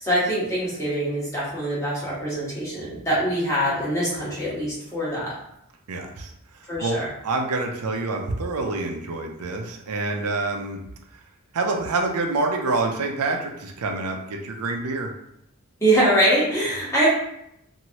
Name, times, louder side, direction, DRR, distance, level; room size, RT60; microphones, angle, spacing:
voice 1, 0.0-5.3 6.7-7.1 15.8-17.1, right 1 dB, 15° left, -8 dB, 1.2 m, -23 dB
voice 2, 5.9-10.8 11.5-15.1, right 3 dB, 85° right, 3 dB, 0.5 m, -27 dB
3.0 x 2.6 x 2.8 m, 0.77 s
head